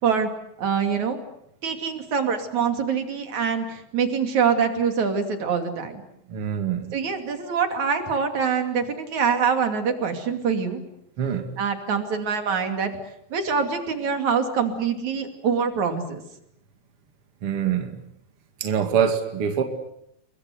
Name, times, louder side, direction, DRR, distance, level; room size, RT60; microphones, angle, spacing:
voice 1, 0.6-1.2 1.6-6.0 6.9-10.8 11.6-12.9 13.3-16.2, right 6 dB, 70° right, 6 dB, 4.0 m, -24 dB
voice 2, 6.3-6.9 11.2-11.5 17.4-18.0 18.6-19.6, right 8 dB, 50° right, 6 dB, 3.1 m, -24 dB
29.0 x 23.0 x 8.0 m, 0.75 s
omnidirectional pair, 3.4 m